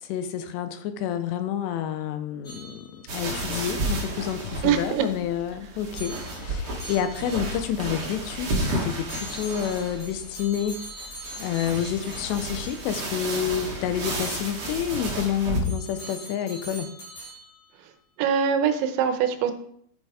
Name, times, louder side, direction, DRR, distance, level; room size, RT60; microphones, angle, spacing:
voice 1, 0.1-10.8 11.4-16.9, left 9 dB, 80° left, 10 dB, 2.7 m, -29 dB
sound 1, 2.4-3.4 6.0-7.7 9.1-13.4 14.1-14.3 15.6-17.8, right 1 dB, 35° left, 5.1 m, -43 dB
sound 2, 3.1-15.6, right 1 dB, 50° right, 1.6 m, -32 dB
voice 2, 4.6-5.1 18.2-19.5, right 8 dB, 85° right, 8 dB, 3.2 m, -23 dB
10.5 x 6.6 x 4.8 m, 0.69 s
omnidirectional pair, 5.2 m